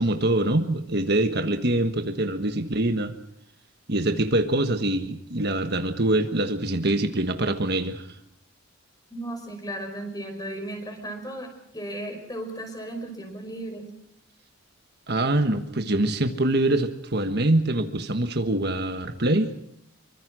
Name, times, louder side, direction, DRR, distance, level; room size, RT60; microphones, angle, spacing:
voice 1, 0.0-3.1 3.9-8.2 15.1-19.5, right 1 dB, 50° right, 7 dB, 1.4 m, -24 dB
voice 2, 9.1-11.5 11.7-13.9, right 1 dB, 15° left, 5 dB, 5.4 m, -35 dB
26.0 x 24.0 x 6.3 m, 0.70 s
head